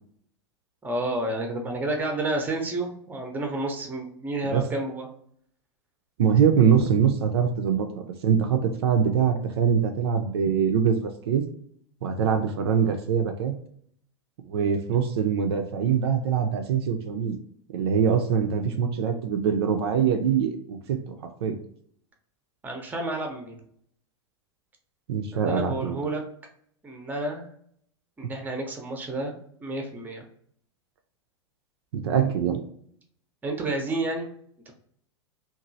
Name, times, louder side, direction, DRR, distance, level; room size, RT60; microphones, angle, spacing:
voice 1, 0.8-5.1 6.8-6.9 22.6-23.6 25.3-26.2 26.8-27.5 28.2-29.3 29.6-30.2 33.4-34.3 34.7-34.8, right 2 dB, 10° right, 3 dB, 0.6 m, -30 dB
voice 2, 6.2-11.4 12.0-13.5 14.4-17.4 17.7-21.0 21.4-21.5 25.1-26.0 31.9-32.6, right 7 dB, 60° right, 5 dB, 0.4 m, -23 dB
2.9 x 2.4 x 2.5 m, 0.65 s
figure-of-eight pair, 90°, 15 cm